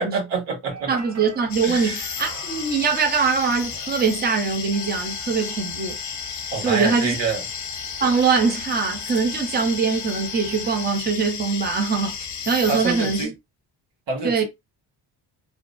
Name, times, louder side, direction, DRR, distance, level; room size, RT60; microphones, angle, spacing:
voice 1, 0.0-0.9 1.6-2.0 6.5-7.4 12.7-13.3 14.1-14.4, right 4 dB, 85° right, 1.1 m, -26 dB
sound 1, 0.7-10.9, right 4 dB, 40° right, 1.0 m, -45 dB
voice 2, 0.9-6.0 6.6-7.2 8.0-13.3 14.2-14.4, right 5 dB, 25° right, 0.6 m, -22 dB
sound 2, 1.5-13.3, left 7 dB, 45° left, 0.6 m, -33 dB
2.5 x 2.0 x 2.4 m
cardioid pair, 100°, 42 cm